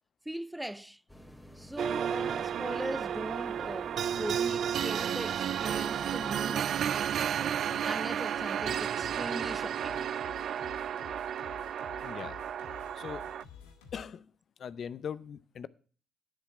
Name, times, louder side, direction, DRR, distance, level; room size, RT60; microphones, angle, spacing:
voice 1, 0.3-1.0 1.6-3.9 4.2-6.7 7.4-10.1, right 1 dB, 5° right, 0.4 m, -40 dB
sound 1, 1.1-6.4, equal, 10° left, 2.6 m, -51 dB
sound 2, 1.8-13.4, right 9 dB, 60° right, 0.4 m, -32 dB
Singing, 8.4-14.0, left 7 dB, 85° left, 1.5 m, -51 dB
voice 2, 12.0-12.4 12.9-13.3 13.9-14.3 14.6-15.7, left 7 dB, 55° left, 0.6 m, -40 dB
11.0 x 7.4 x 5.8 m
hypercardioid pair, 50°, 0 cm